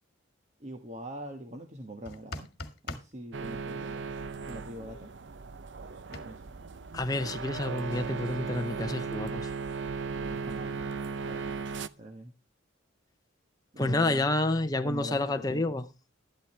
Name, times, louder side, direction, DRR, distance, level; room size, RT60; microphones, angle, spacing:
voice 1, 0.6-2.5 2.8-4.0 4.5-5.1 6.1-6.5 10.1-10.9 11.2-11.5 12.0-12.3 13.7-14.3 14.8-15.7, equal, 35° right, 1.4 m, -43 dB
sound 1, 2.1-3.1 6.1-6.2, left 2 dB, 50° left, 1.6 m, -40 dB
sound 2, 3.3-11.9, right 5 dB, 60° right, 0.6 m, -37 dB
voice 2, 6.9-9.5 13.8-15.9, left 2 dB, 20° left, 0.6 m, -29 dB
12.5 x 12.0 x 3.3 m
head